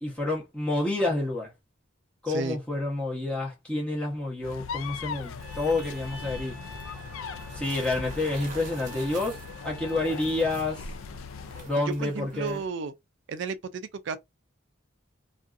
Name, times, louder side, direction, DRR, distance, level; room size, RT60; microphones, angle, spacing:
voice 1, 0.0-1.5 2.2-6.6 7.5-10.9 11.7-12.6, left 2 dB, 5° left, 0.9 m, -29 dB
voice 2, 2.3-2.6 12.0-12.9 13.3-14.2, right 4 dB, 60° right, 0.4 m, -33 dB
sound 1, 4.4-11.7, left 5 dB, 80° left, 0.3 m, -40 dB
sound 2, 5.1-12.7, right 3 dB, 40° right, 0.8 m, -47 dB
Trumpet, 5.4-10.5, left 2 dB, 45° left, 1.4 m, -47 dB
2.6 x 2.4 x 2.4 m
head